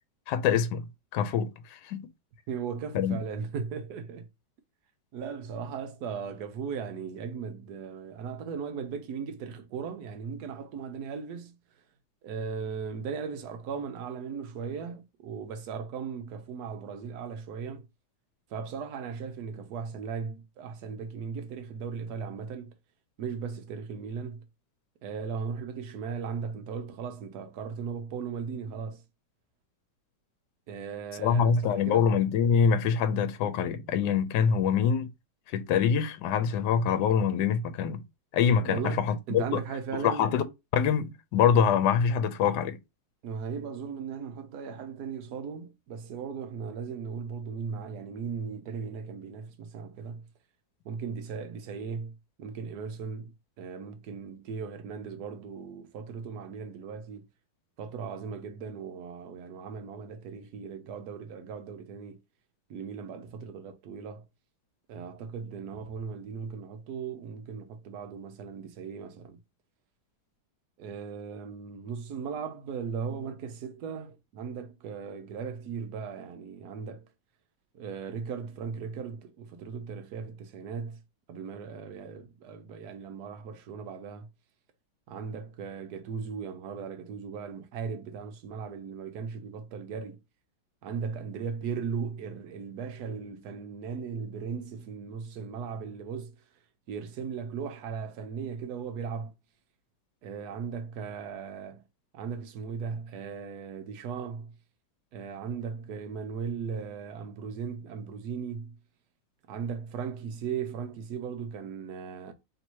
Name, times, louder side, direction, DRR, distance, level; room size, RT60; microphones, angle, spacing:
voice 1, 0.3-0.9 1.1-2.1 2.9-3.2 31.2-35.1 35.5-38.0 38.3-39.6 39.9-40.4 40.7-42.8, left 7 dB, 75° left, 1.2 m, -25 dB
voice 2, 2.5-4.3 5.1-11.5 12.2-17.9 18.5-22.7 23.2-24.5 25.0-29.0 30.7-32.1 38.6-40.3 43.2-50.3 50.8-57.3 57.8-62.2 62.7-64.3 64.9-69.4 70.8-77.1 77.7-81.0 81.3-84.3 85.1-90.2 90.8-96.3 96.9-99.3 100.2-101.8 102.1-104.5 105.1-108.8 109.5-112.3, right 6 dB, 65° right, 1.2 m, -37 dB
3.3 x 2.8 x 4.5 m
omnidirectional pair, 2.0 m